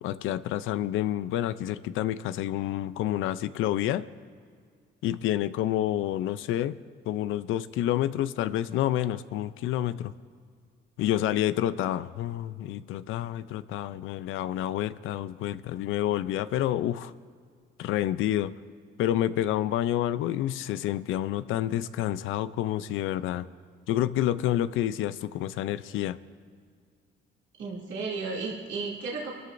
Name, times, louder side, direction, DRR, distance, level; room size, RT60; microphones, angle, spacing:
voice 1, 0.0-4.1 5.0-6.8 7.1-10.1 11.0-17.1 17.8-18.5 19.0-23.5 23.9-26.2, left 12 dB, 85° left, 14 dB, 0.5 m, -28 dB
voice 2, 27.6-29.3, right 4 dB, 70° right, -4 dB, 2.7 m, -33 dB
25.5 x 13.5 x 2.6 m, 2.1 s
cardioid pair, 90°, 20 cm